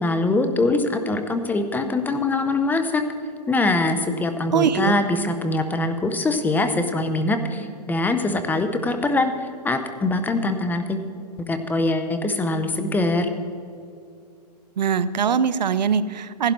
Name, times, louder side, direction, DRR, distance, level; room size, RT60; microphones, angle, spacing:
voice 1, 0.0-3.0 3.5-9.3 9.6-11.0 11.5-13.3, left 2 dB, 10° left, 8 dB, 0.7 m, -23 dB
voice 2, 4.5-5.0 14.8-16.5, right 7 dB, 85° right, 15 dB, 0.6 m, -22 dB
15.5 x 11.5 x 4.5 m, 2.4 s
hypercardioid pair, 135°, 21 cm